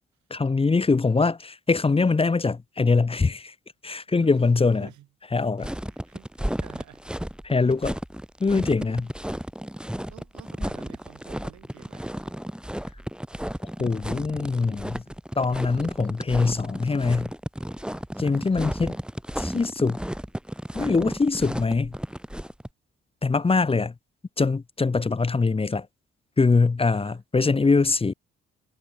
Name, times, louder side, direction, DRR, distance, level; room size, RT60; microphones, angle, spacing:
voice 1, 0.3-3.5 3.8-4.9 5.3-5.7 7.4-8.0 8.4-9.1 13.8-15.0 15.4-17.3 18.2-18.9 19.4-20.0 20.7-21.9 23.2-23.9 24.4-25.9 26.4-28.1, left 4 dB, 20° left, 0.7 m, -23 dB
voice 2, 4.2-4.5 4.8-5.1 5.4-7.0 7.5-7.7 10.1-12.4 18.1-19.0 26.9-27.2, right 14 dB, 75° right, 7.0 m, -51 dB
sound 1, 5.6-22.7, equal, 5° right, 2.1 m, -33 dB
hypercardioid pair, 45°, 29 cm